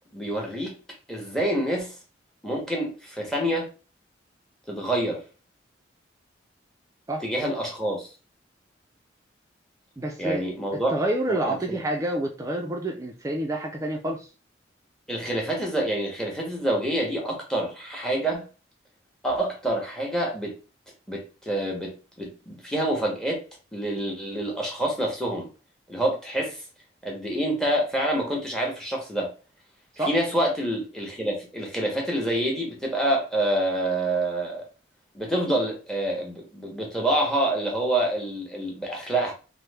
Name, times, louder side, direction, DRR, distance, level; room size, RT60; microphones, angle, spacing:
voice 1, 0.1-0.7 1.1-1.9 2.4-3.7 4.7-5.2 7.2-8.1 10.2-10.9 11.3-11.8 15.1-18.4 19.2-20.6 21.1-23.4 23.7-25.5 25.9-26.6 27.0-29.3 30.0-34.7 35.1-39.3, right 1 dB, 5° left, 0 dB, 0.8 m, -27 dB
voice 2, 10.0-10.4 10.7-14.3 30.0-30.2, right 1 dB, 15° right, 1 dB, 0.3 m, -28 dB
3.0 x 2.1 x 3.2 m, 0.34 s
head